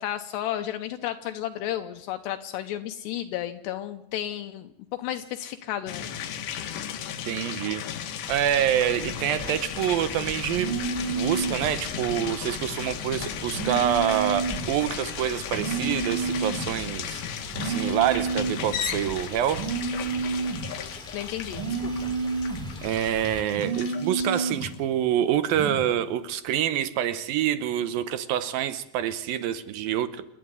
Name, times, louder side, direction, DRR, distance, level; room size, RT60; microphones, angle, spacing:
voice 1, 0.0-6.1 21.1-22.2, left 12 dB, 80° left, 3.0 m, -33 dB
sound 1, 5.9-24.8, left 9 dB, 60° left, 2.3 m, -35 dB
voice 2, 7.2-7.8 8.3-17.2 17.6-19.7 22.8-30.3, right 10 dB, 75° right, 2.3 m, -26 dB
sound 2, 8.3-23.4, equal, ahead, 2.9 m, -44 dB
sound 3, 10.5-11.7 13.5-14.7 15.5-16.7 17.5-18.7 19.5-20.7 21.5-22.7 23.5-24.7 25.5-25.8, right 4 dB, 30° right, 2.7 m, -30 dB
27.5 x 11.5 x 9.6 m
omnidirectional pair, 5.0 m